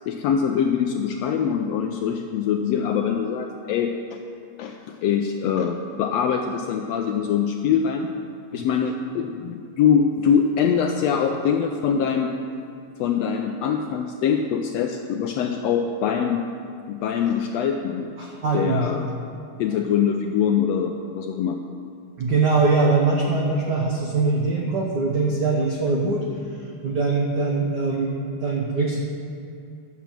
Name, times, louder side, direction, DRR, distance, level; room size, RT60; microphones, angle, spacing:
voice 1, 0.1-4.2 4.6-8.1 8.5-12.3 13.0-16.4 16.9-18.1 18.5-19.1 19.6-21.6, left 7 dB, 80° left, 4 dB, 1.5 m, -23 dB
voice 2, 18.2-18.9 22.2-26.2 26.6-29.0, right 3 dB, 75° right, -2 dB, 0.9 m, -22 dB
10.5 x 7.0 x 7.4 m, 2.5 s
omnidirectional pair, 3.4 m